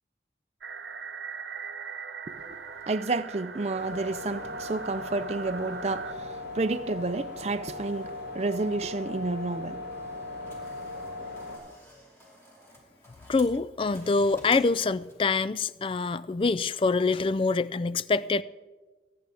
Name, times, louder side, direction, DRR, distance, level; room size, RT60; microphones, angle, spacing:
sound 1, 0.6-6.1, right 6 dB, 85° right, 0.9 m, -40 dB
voice 1, 2.9-9.8, right 3 dB, 35° right, 0.5 m, -30 dB
sound 2, 3.8-11.6, left 2 dB, 80° left, 5.7 m, -39 dB
sound 3, 9.9-15.4, equal, 15° left, 2.9 m, -52 dB
voice 2, 13.3-18.4, left 4 dB, 30° left, 0.3 m, -25 dB
23.5 x 10.5 x 3.5 m
head